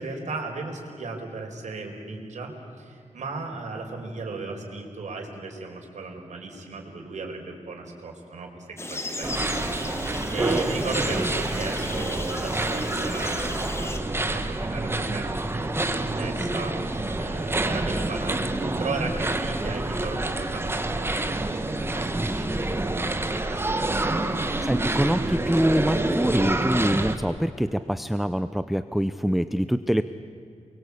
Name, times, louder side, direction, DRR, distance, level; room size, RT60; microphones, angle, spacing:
voice 1, 0.0-14.0 14.3-22.7 23.3-24.1, right 3 dB, 75° right, 1 dB, 4.9 m, -36 dB
sound 1, 8.8-14.0, left 2 dB, 20° left, 2.2 m, -35 dB
sound 2, 9.2-27.2, right 2 dB, 20° right, 1.7 m, -27 dB
voice 2, 22.2-22.8 24.4-30.0, equal, ahead, 11 dB, 0.6 m, -25 dB
29.0 x 23.0 x 8.5 m, 2.5 s
wide cardioid pair, 115°, 12 cm